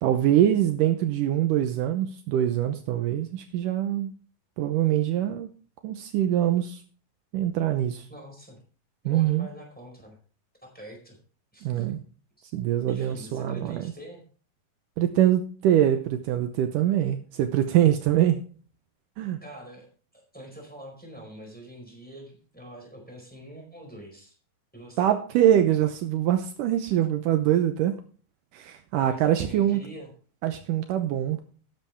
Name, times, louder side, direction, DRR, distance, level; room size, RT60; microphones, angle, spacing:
voice 1, 0.0-4.1 4.6-5.5 5.8-6.8 7.3-8.1 9.1-9.5 11.6-12.0 12.5-13.8 15.0-18.4 19.2-19.4 25.0-28.0 28.5-29.8 30.4-31.4, right 11 dB, 75° right, 8 dB, 2.3 m, -24 dB
voice 2, 8.1-8.6 9.0-10.2 10.6-11.2 11.5-11.9 12.4-12.5 12.9-14.2 19.4-19.9 20.1-24.4 24.7-25.1 29.0-30.1, right 1 dB, ahead, 1 dB, 4.1 m, -45 dB
12.5 x 10.5 x 3.5 m, 0.41 s
omnidirectional pair, 4.1 m